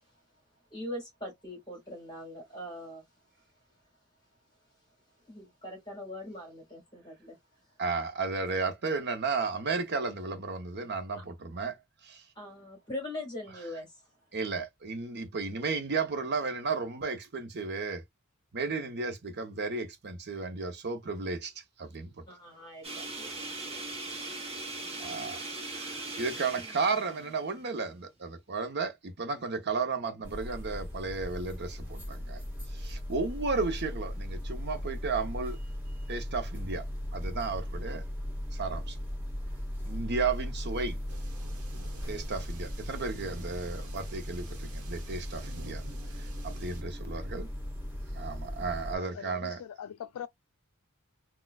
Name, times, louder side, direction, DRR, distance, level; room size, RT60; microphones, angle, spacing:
voice 1, 0.7-3.1 5.3-7.4 11.2-11.3 12.4-14.1 22.3-23.8, left 1 dB, 20° left, 1.9 m, -42 dB
voice 2, 7.8-11.8 12.0-12.2 13.5-13.8 14.3-18.0 18.5-22.2 25.0-32.4 32.7-35.6 36.1-36.8 37.1-38.0 38.5-39.0 39.8-41.0 42.1-45.8 46.1-47.5 48.1-49.6, right 4 dB, 50° right, 0.8 m, -34 dB
sound 1, 22.8-28.0, right 2 dB, 30° right, 1.0 m, -40 dB
sound 2, 30.2-48.9, equal, 10° right, 1.5 m, -38 dB
sound 3, 41.1-46.8, right 3 dB, 90° right, 1.2 m, -51 dB
voice 3, 48.9-50.3, left 9 dB, 85° left, 0.3 m, -42 dB
4.1 x 2.3 x 2.3 m
head